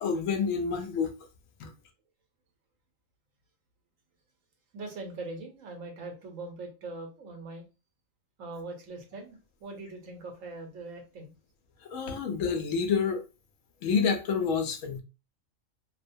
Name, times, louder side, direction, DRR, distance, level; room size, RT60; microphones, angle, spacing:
voice 1, 0.0-1.1 1.6-1.7 11.9-13.2 13.8-15.0, left 5 dB, 90° left, 1.0 m, -28 dB
voice 2, 4.7-7.6 8.4-11.3, right 2 dB, 85° right, 1.2 m, -41 dB
2.7 x 2.1 x 2.6 m
omnidirectional pair, 1.3 m